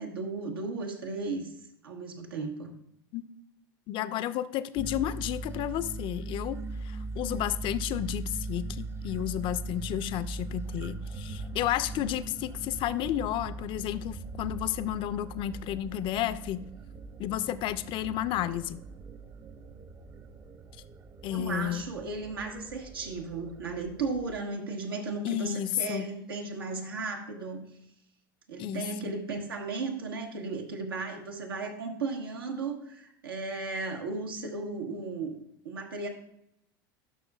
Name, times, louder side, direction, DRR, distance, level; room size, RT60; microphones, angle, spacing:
voice 1, 0.0-1.5 1.8-2.7 21.3-27.6 28.5-35.3 35.6-36.1, right 3 dB, 90° right, 2 dB, 1.3 m, -35 dB
voice 2, 3.9-16.6 17.2-18.8 21.2-21.8 25.2-26.1 28.6-29.1, left 12 dB, 45° left, 14 dB, 0.5 m, -32 dB
sound 1, 4.7-24.4, right 3 dB, 20° right, 0.5 m, -40 dB
12.0 x 5.6 x 2.3 m, 0.77 s
hypercardioid pair, 90°, 12 cm